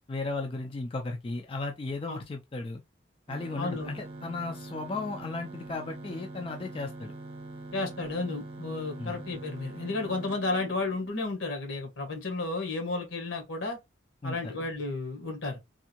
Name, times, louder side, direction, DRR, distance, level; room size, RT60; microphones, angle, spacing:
voice 1, 0.1-2.8 3.3-7.1 9.0-9.2 14.2-14.5, left 3 dB, 25° left, 0.3 m, -35 dB
sound 1, 3.3-11.3, right 2 dB, 30° right, 0.7 m, -44 dB
voice 2, 3.6-3.9 7.7-13.8 14.2-15.6, left 3 dB, 80° left, 1.5 m, -32 dB
3.5 x 2.6 x 2.9 m
head